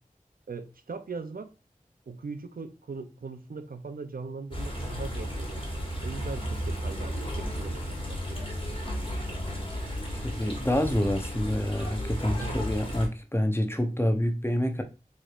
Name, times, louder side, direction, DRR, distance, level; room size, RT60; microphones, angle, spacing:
voice 1, 0.5-1.5 2.1-8.7 12.4-12.6, right 4 dB, 85° right, 0.5 m, -40 dB
sound 1, 4.5-13.1, equal, 35° left, 1.5 m, -33 dB
voice 2, 10.2-14.8, left 1 dB, 15° left, 0.7 m, -27 dB
4.7 x 3.2 x 2.4 m
wide cardioid pair, 45°, 14 cm